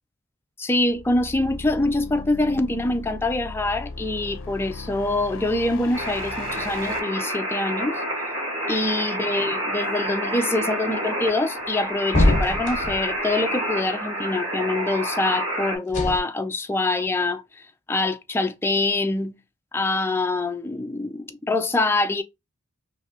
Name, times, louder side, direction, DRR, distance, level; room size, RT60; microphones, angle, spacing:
voice 1, 0.6-8.0 8.7-17.4 17.9-19.4 19.7-22.2, left 2 dB, 10° left, 0.3 m, -25 dB
sound 1, 0.9-7.0, left 3 dB, 60° left, 0.5 m, -38 dB
sound 2, 5.9-15.8, right 1 dB, 25° right, 1.4 m, -29 dB
sound 3, 12.1-13.0 15.9-16.2, left 1 dB, 35° left, 1.1 m, -21 dB
3.3 x 2.8 x 2.7 m
head